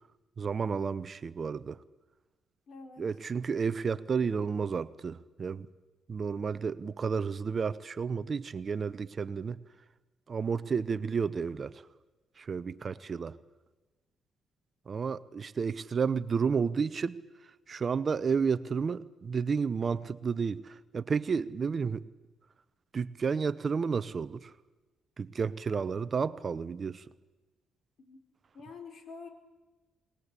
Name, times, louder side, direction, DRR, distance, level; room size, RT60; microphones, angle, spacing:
voice 1, 0.4-1.8 3.0-5.7 6.1-9.6 10.3-11.8 12.4-13.4 14.9-17.2 17.7-22.0 22.9-24.5 25.2-27.0, right 5 dB, 40° right, 16 dB, 0.8 m, -31 dB
voice 2, 2.7-3.1 28.0-28.2 28.5-29.3, left 4 dB, 55° left, 5 dB, 4.4 m, -47 dB
22.5 x 19.5 x 8.3 m, 1.2 s
cardioid pair, 90°, 0 cm